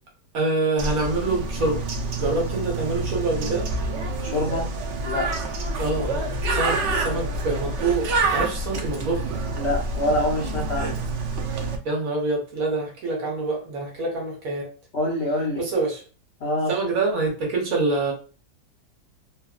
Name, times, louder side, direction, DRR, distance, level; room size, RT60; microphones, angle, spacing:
voice 1, 0.3-1.8 2.2-3.7 5.8-9.2 11.8-14.7 15.6-16.0 16.7-18.1, right 3 dB, 60° right, -1 dB, 1.2 m, -26 dB
Bird, 0.8-11.8, right 2 dB, 75° right, 0.6 m, -27 dB
voice 2, 4.2-4.7 5.0-5.3 9.6-11.0 14.9-15.6 16.4-16.7, left 1 dB, 65° left, -3 dB, 0.7 m, -25 dB
2.8 x 2.6 x 2.3 m, 0.37 s
omnidirectional pair, 1.8 m